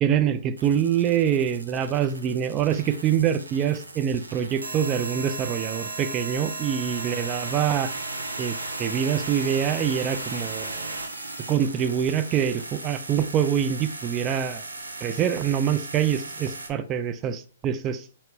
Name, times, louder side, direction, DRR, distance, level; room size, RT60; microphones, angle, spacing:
voice 1, 0.0-7.9 8.4-10.9 11.5-14.6 15.0-18.1, right 9 dB, 30° right, 10 dB, 0.4 m, -25 dB
sound 1, 0.6-16.7, right 2 dB, 85° right, 0.9 m, -36 dB
4.3 x 2.9 x 3.1 m, 0.39 s
hypercardioid pair, 125°, 0 cm